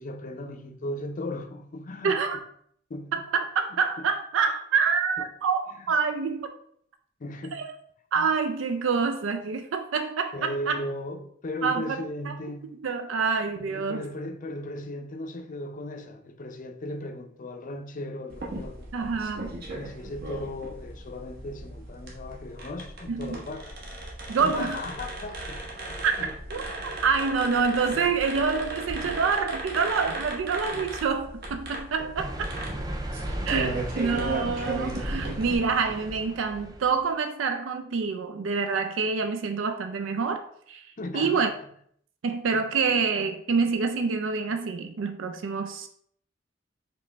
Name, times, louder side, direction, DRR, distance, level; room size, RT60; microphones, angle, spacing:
voice 1, 0.0-2.2 2.9-3.2 3.7-4.0 5.8-5.9 7.2-7.6 10.3-12.7 13.6-18.9 19.7-23.7 24.4-26.3 26.9-27.0 27.9-28.1 29.0-29.2 30.7-30.9 32.0-32.1 41.0-41.4 42.5-42.6, left 1 dB, 45° left, 0.5 m, -37 dB
voice 2, 2.0-2.4 3.1-6.5 7.5-7.7 8.1-10.8 11.6-12.4 12.8-14.0 18.9-19.6 23.1-23.4 24.3-24.8 26.0-26.1 26.5-32.3 33.5-40.4 40.7-41.5 42.2-45.9, right 5 dB, 75° right, 0.4 m, -27 dB
sound 1, 18.3-35.6, right 2 dB, 55° right, 1.1 m, -36 dB
sound 2, 32.2-37.0, right 1 dB, 20° right, 0.5 m, -36 dB
5.1 x 3.0 x 3.3 m
head